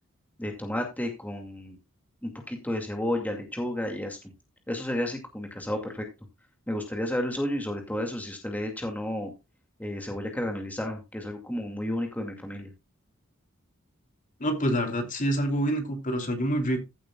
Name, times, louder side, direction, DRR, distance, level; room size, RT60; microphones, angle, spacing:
voice 1, 0.4-1.8 2.2-4.2 4.7-6.1 6.7-9.3 9.8-12.7, left 1 dB, 10° left, 3 dB, 2.2 m, -32 dB
voice 2, 14.4-16.8, equal, 40° left, 5 dB, 2.9 m, -27 dB
15.5 x 8.7 x 2.3 m, 0.25 s
head